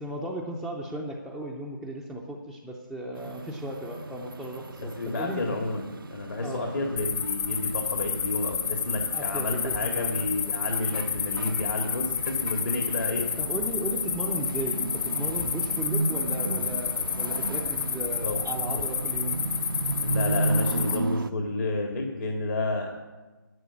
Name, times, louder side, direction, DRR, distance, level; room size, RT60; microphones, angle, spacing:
voice 1, 0.0-5.6 6.4-6.7 9.1-10.2 13.4-19.4, right 1 dB, ahead, -1 dB, 0.5 m, -36 dB
sound 1, 3.2-21.3, right 3 dB, 90° right, 0.7 m, -35 dB
voice 2, 5.0-5.9 6.1-13.3 17.9-18.4 18.6-18.7 20.0-22.9, left 2 dB, 70° left, 1 dB, 2.2 m, -30 dB
sound 2, 7.0-21.0, left 7 dB, 35° left, 0.8 m, -30 dB
11.0 x 7.5 x 8.4 m, 1.2 s
figure-of-eight pair, 160°, 11 cm